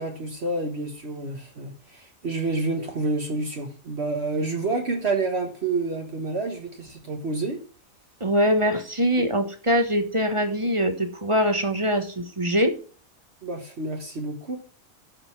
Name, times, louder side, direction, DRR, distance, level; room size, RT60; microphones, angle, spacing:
voice 1, 0.0-7.6 9.2-9.3 13.4-14.6, right 3 dB, 50° right, 3 dB, 1.5 m, -29 dB
voice 2, 8.2-12.7, equal, 25° right, 7 dB, 1.2 m, -23 dB
12.5 x 5.2 x 5.9 m, 0.39 s
omnidirectional pair, 1.4 m